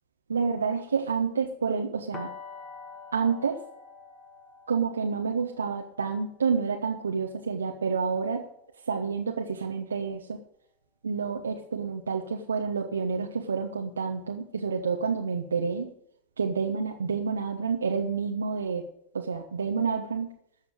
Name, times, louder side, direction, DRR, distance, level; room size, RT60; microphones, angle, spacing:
voice 1, 0.3-2.3 3.1-3.6 4.7-8.4 8.9-10.4 11.0-15.9 16.4-18.8 19.1-20.3, right 5 dB, 70° right, 2 dB, 1.1 m, -29 dB
sound 1, 2.1-8.0, left 5 dB, 20° left, 1.9 m, -47 dB
13.5 x 7.2 x 8.1 m, 0.73 s
figure-of-eight pair, 90°, 0 cm